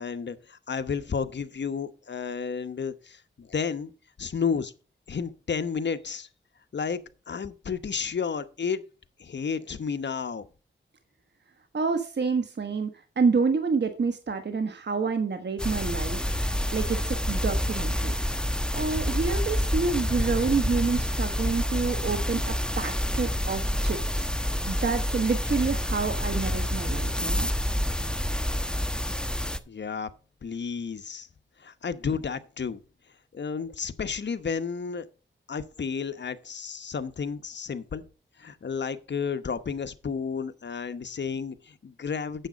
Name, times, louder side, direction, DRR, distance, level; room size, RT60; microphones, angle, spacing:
voice 1, 0.0-3.9 4.2-4.7 5.1-6.3 6.7-7.0 7.3-8.8 9.2-10.4 29.7-30.1 30.4-31.3 31.6-32.8 33.3-35.0 35.5-38.0 38.4-42.5, left 6 dB, 60° left, 1.0 m, -32 dB
voice 2, 11.7-12.9 13.2-18.2 18.7-24.3 24.7-27.5, right 4 dB, 60° right, 1.3 m, -28 dB
sound 1, 15.6-29.6, equal, 5° left, 1.0 m, -28 dB
9.0 x 7.3 x 5.1 m
cardioid pair, 60°, 20 cm